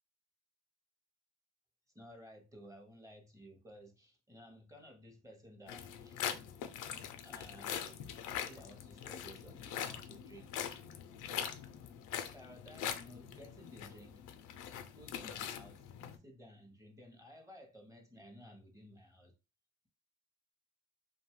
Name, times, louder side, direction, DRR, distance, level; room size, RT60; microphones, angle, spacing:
voice 1, 1.9-6.2 7.2-10.6 12.2-14.2 14.9-15.9 16.1-19.3, equal, 10° right, 0.7 m, -56 dB
sound 1, 5.7-16.2, left 9 dB, 90° left, 0.5 m, -43 dB
2.6 x 2.3 x 3.0 m
cardioid pair, 90°, 30 cm